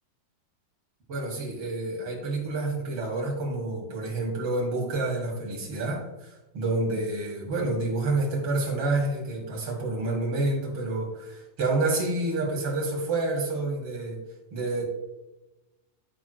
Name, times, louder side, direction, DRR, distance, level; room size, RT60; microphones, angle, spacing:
voice 1, 1.1-14.2 14.5-14.9, right 2 dB, 75° right, -3 dB, 1.3 m, -28 dB
13.0 x 4.7 x 2.3 m, 1.0 s
omnidirectional pair, 5.6 m